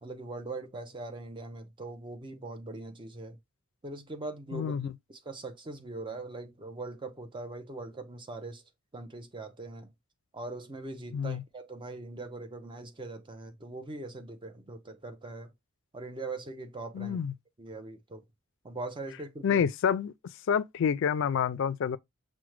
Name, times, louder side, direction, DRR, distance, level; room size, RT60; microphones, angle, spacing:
voice 1, 0.0-3.4 3.8-4.7 5.1-8.6 8.9-9.9 10.3-15.5 15.9-17.2 17.6-18.2 18.6-19.6, right 2 dB, 25° right, 0.6 m, -41 dB
voice 2, 4.5-4.9 11.1-11.4 16.9-17.3 19.4-20.1 20.5-22.0, left 7 dB, 60° left, 0.3 m, -28 dB
5.9 x 2.1 x 3.1 m
head